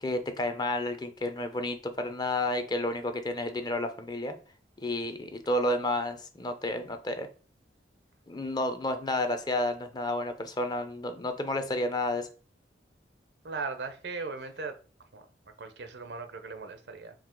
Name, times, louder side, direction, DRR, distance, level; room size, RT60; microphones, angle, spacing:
voice 1, 0.0-4.3 4.8-7.3 8.3-12.3, left 1 dB, 25° left, 8 dB, 0.5 m, -31 dB
voice 2, 13.4-14.7 15.1-15.3 15.6-17.1, right 4 dB, 70° right, 8 dB, 0.7 m, -38 dB
4.8 x 2.8 x 3.7 m, 0.37 s
head